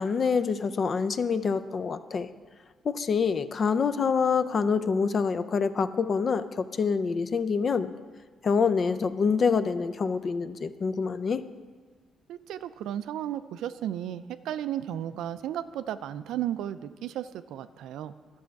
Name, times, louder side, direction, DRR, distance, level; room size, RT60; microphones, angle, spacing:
voice 1, 0.0-2.3 2.8-7.9 8.4-11.4, left 5 dB, 45° left, 11 dB, 0.5 m, -26 dB
voice 2, 12.3-18.1, right 11 dB, 85° right, 13 dB, 0.4 m, -34 dB
12.5 x 6.3 x 4.6 m, 1.5 s
cardioid pair, 90°, 0 cm